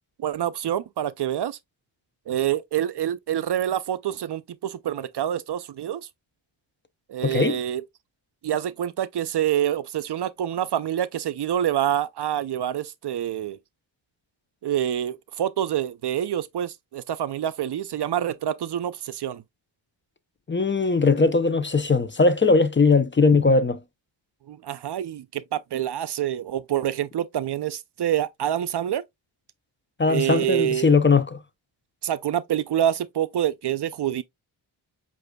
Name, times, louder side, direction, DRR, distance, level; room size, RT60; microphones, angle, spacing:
voice 1, 0.2-1.6 2.3-6.1 7.1-7.8 8.4-13.6 14.6-19.4 24.5-29.0 30.1-30.9 32.0-34.2, right 11 dB, 55° right, 0.5 m, -26 dB
voice 2, 7.2-7.6 20.5-23.8 30.0-31.4, left 4 dB, 25° left, 0.6 m, -19 dB
7.8 x 2.6 x 2.2 m
cardioid pair, 55°, 49 cm